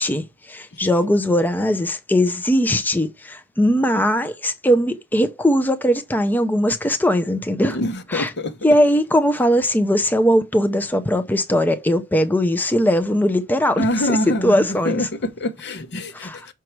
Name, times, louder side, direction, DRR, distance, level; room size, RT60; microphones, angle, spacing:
voice 1, 0.0-7.8 8.1-8.3 8.6-14.2 14.4-15.1 16.2-16.5, equal, 10° left, 0.5 m, -20 dB
voice 2, 7.7-8.5 13.8-16.5, left 1 dB, 55° left, 0.9 m, -25 dB
6.1 x 4.6 x 4.5 m
head